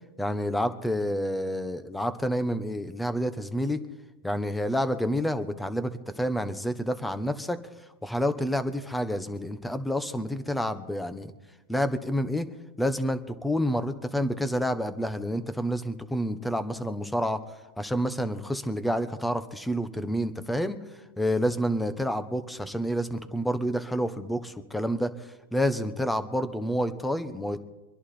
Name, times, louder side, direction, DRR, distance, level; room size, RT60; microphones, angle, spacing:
voice 1, 0.2-3.8 4.2-7.6 8.0-11.3 11.7-12.5 12.8-17.4 17.8-20.8 21.2-27.6, equal, 5° left, 11 dB, 1.1 m, -29 dB
24.5 x 11.0 x 4.3 m, 1.1 s
hypercardioid pair, 130°, 0 cm